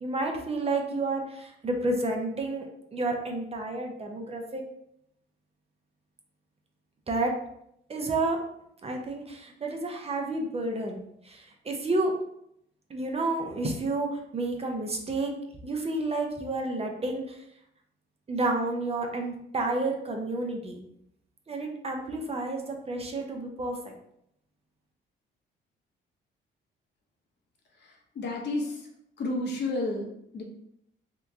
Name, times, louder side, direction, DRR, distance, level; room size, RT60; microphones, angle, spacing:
voice 1, 0.0-2.7 2.9-4.6 7.1-7.3 7.9-8.4 8.8-11.0 11.2-12.1 12.9-15.3 15.6-17.4 18.3-20.8 21.5-23.9, right 2 dB, 30° right, 2 dB, 0.6 m, -30 dB
voice 2, 27.7-28.9 29.2-30.4, left 2 dB, 60° left, 0 dB, 0.9 m, -32 dB
2.9 x 2.2 x 3.5 m, 0.75 s
cardioid pair, 90°, 20 cm